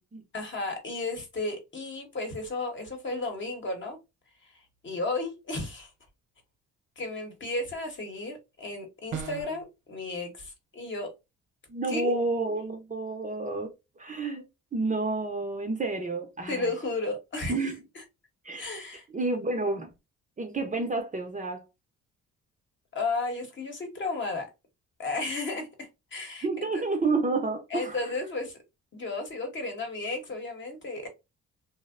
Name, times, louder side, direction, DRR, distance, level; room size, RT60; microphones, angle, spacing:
voice 1, 0.3-4.0 4.5-5.9 7.0-11.1 11.9-12.1 16.5-17.6 18.6-19.0 22.9-24.5 25.0-26.5 26.7-26.8 27.7-28.6 28.9-31.1, left 2 dB, 40° left, 0.9 m, -33 dB
sound 1, 9.1-9.7, right 7 dB, 70° right, 0.8 m, -36 dB
voice 2, 11.7-13.7 14.0-14.4 14.7-16.7 17.5-17.8 18.4-18.7 19.1-19.9 20.4-21.6 26.4-28.1, right 3 dB, 25° right, 0.6 m, -30 dB
2.5 x 2.0 x 2.4 m
cardioid pair, 90°, 30 cm